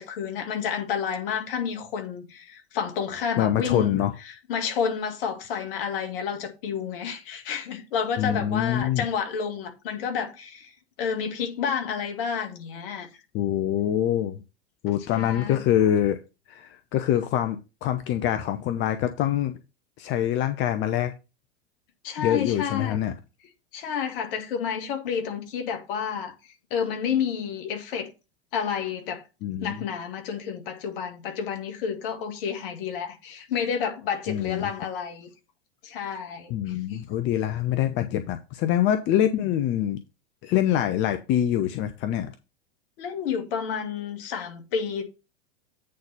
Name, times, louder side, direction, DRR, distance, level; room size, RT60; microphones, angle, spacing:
voice 1, 0.0-4.0 4.2-10.7 11.0-13.1 15.1-15.6 22.0-23.0 23.7-28.1 28.5-29.2 29.6-35.3 35.8-37.0 43.0-45.0, left 7 dB, 55° left, 2.0 m, -30 dB
voice 2, 3.4-4.1 8.2-9.0 13.3-14.4 14.8-16.2 16.5-19.6 20.0-21.1 22.2-23.1 29.4-29.8 34.3-34.7 36.5-40.0 40.4-42.3, left 11 dB, 35° left, 0.8 m, -25 dB
8.7 x 4.0 x 5.6 m
figure-of-eight pair, 95°, 33 cm